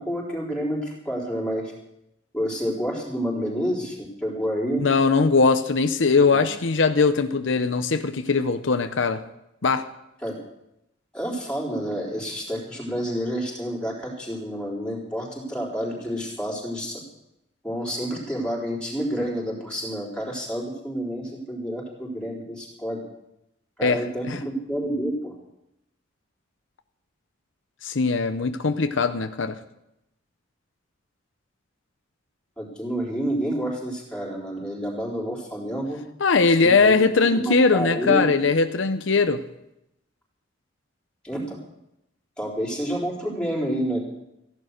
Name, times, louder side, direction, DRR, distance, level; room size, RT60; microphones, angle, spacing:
voice 1, 0.0-1.7 2.3-4.8 6.3-6.4 10.2-10.3 11.1-17.0 17.6-23.0 23.8-24.4 24.7-25.3 32.6-36.0 36.6-38.2 41.2-41.6 42.4-44.0, equal, 5° left, -4 dB, 3.9 m, -29 dB
voice 2, 4.7-9.2 9.6-9.9 23.8-24.0 24.3-24.4 27.8-29.5 36.2-39.4, left 4 dB, 75° left, 9 dB, 0.7 m, -20 dB
15.0 x 11.0 x 6.5 m, 0.85 s
head